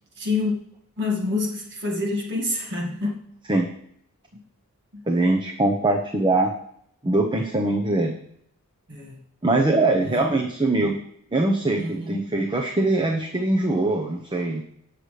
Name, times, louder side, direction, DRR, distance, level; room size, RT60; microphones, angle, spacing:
voice 1, 0.2-0.6 1.0-3.3 4.9-5.0 8.9-9.2 10.0-10.3 10.7-10.9 11.7-12.2, left 3 dB, 50° right, 2.0 m, -27 dB
voice 2, 5.1-6.5 7.0-8.1 9.4-11.0 11.3-14.6, right 2 dB, 20° right, 0.9 m, -22 dB
18.5 x 6.7 x 3.3 m
head